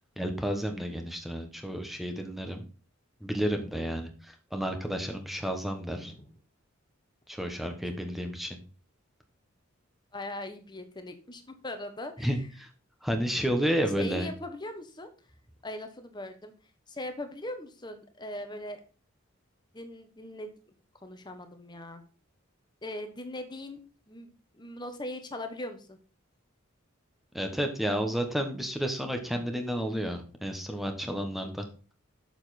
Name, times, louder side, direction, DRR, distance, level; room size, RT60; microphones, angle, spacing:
voice 1, 0.2-2.6 3.2-6.1 7.3-8.6 12.2-12.7 13.0-14.3 27.3-31.6, equal, ahead, 4 dB, 1.2 m, -31 dB
voice 2, 5.9-6.4 10.1-12.3 14.0-15.1 15.6-16.5 16.9-18.8 19.7-20.6 21.0-22.0 22.8-23.8 24.1-26.0, left 1 dB, 20° left, 7 dB, 1.2 m, -40 dB
7.0 x 7.0 x 4.2 m, 0.37 s
head